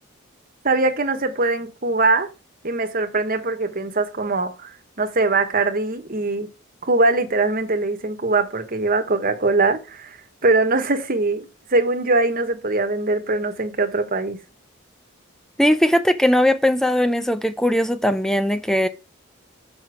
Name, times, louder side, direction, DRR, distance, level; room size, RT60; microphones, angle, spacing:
voice 1, 0.6-2.3 2.6-6.5 6.8-10.2 10.4-14.4, right 3 dB, 45° right, 1.3 m, -22 dB
voice 2, 15.6-18.9, equal, ahead, 0.6 m, -19 dB
6.1 x 5.8 x 4.8 m
head